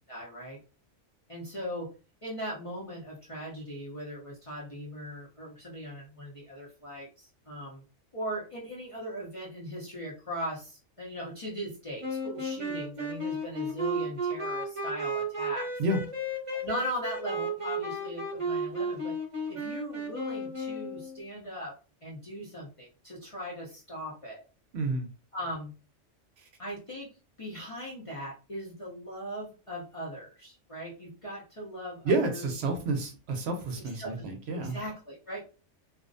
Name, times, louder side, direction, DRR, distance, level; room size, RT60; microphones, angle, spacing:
voice 1, 0.1-0.6 1.3-1.9 2.2-7.8 8.1-15.7 16.5-19.2 19.5-21.7 22.0-24.4 25.3-25.7 26.6-27.1 27.4-32.5 33.8-34.3 34.5-35.4, equal, 35° left, -5 dB, 0.6 m, -39 dB
sound 1, 12.0-21.2, right 1 dB, 35° right, 0.7 m, -33 dB
voice 2, 24.7-25.1 32.0-34.8, right 2 dB, 65° right, 5 dB, 0.8 m, -29 dB
2.4 x 2.0 x 2.5 m, 0.33 s
omnidirectional pair, 1.3 m